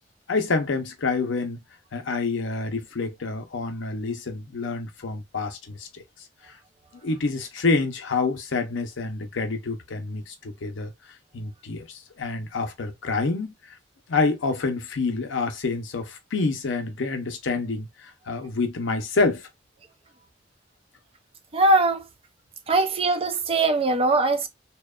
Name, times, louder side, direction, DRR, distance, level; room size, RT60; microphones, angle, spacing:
voice 1, 0.3-1.6 1.9-6.0 6.5-6.6 7.0-10.9 11.3-13.8 14.1-19.5, left 3 dB, 80° left, 0.6 m, -27 dB
voice 2, 21.5-22.0 22.7-24.5, right 2 dB, 30° right, 0.5 m, -21 dB
2.8 x 2.1 x 2.3 m
head